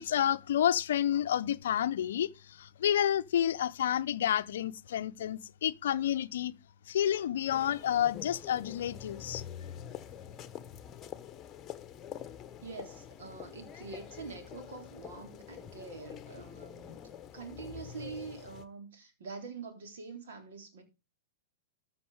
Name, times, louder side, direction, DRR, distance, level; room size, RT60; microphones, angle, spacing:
voice 1, 0.0-6.6 6.9-9.4, left 10 dB, 70° left, 0.6 m, -30 dB
sound 1, 7.5-18.7, left 9 dB, 25° left, 1.1 m, -46 dB
voice 2, 12.6-17.0 17.3-20.8, right 4 dB, 65° right, 3.4 m, -45 dB
14.0 x 6.0 x 4.8 m
hypercardioid pair, 115°, 0 cm